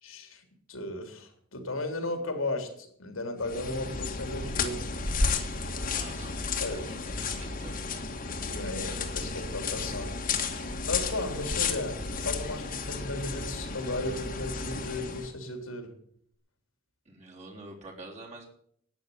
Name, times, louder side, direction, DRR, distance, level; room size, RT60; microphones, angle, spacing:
voice 1, 0.0-0.4 0.7-5.2 6.6-6.9 8.5-10.2 10.9-15.9, left 2 dB, 85° left, 5 dB, 3.3 m, -35 dB
sound 1, 3.4-15.3, left 4 dB, 45° left, 1.9 m, -33 dB
voice 2, 5.9-6.4 6.7-6.9 7.2-7.8 17.1-18.5, right 2 dB, 35° right, -1 dB, 3.7 m, -46 dB
12.0 x 9.5 x 10.0 m, 0.65 s
head